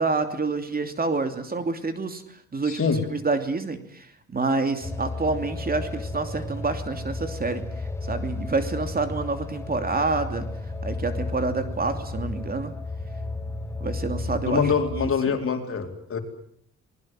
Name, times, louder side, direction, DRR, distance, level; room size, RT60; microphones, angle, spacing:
voice 1, 0.0-7.6 8.1-10.5 10.8-12.7 13.8-15.4, right 3 dB, 30° right, 8 dB, 2.8 m, -28 dB
voice 2, 2.7-3.0 14.5-16.2, left 6 dB, 45° left, 5 dB, 4.4 m, -24 dB
sound 1, 4.8-15.1, left 2 dB, 10° left, 3.0 m, -33 dB
27.0 x 20.5 x 7.7 m, 0.64 s
cardioid pair, 90°, 30 cm